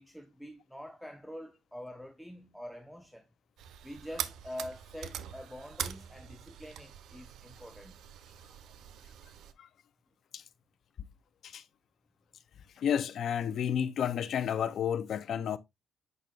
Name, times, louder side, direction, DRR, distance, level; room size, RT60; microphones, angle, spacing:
voice 1, 0.0-3.3 3.8-8.0, equal, ahead, 0.9 m, -45 dB
sound 1, 3.6-9.5, right 9 dB, 80° right, 0.6 m, -43 dB
voice 2, 12.8-15.6, left 8 dB, 65° left, 0.7 m, -31 dB
8.3 x 6.0 x 2.5 m
cardioid pair, 90°, 0 cm